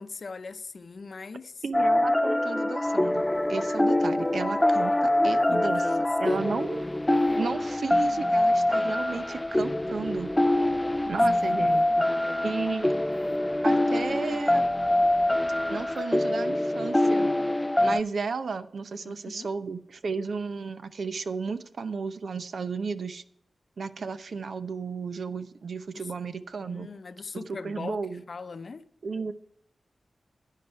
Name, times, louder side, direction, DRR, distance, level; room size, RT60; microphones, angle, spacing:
voice 1, 0.0-1.6 5.5-6.4 11.4-11.8 18.9-19.6 25.9-26.1 26.7-28.9, left 4 dB, 60° left, 0.7 m, -41 dB
voice 2, 1.6-5.8 6.2-6.8 7.4-10.3 11.1-12.1 12.4-12.9 13.6-14.7 15.7-17.3 17.8-23.2 23.8-26.9 27.3-28.2 29.0-29.3, right 4 dB, 70° right, 0.7 m, -33 dB
sound 1, 1.7-18.0, left 1 dB, 15° left, 0.3 m, -24 dB
sound 2, 2.8-16.0, equal, 10° right, 1.8 m, -50 dB
11.0 x 9.3 x 4.5 m
cardioid pair, 60°, 0 cm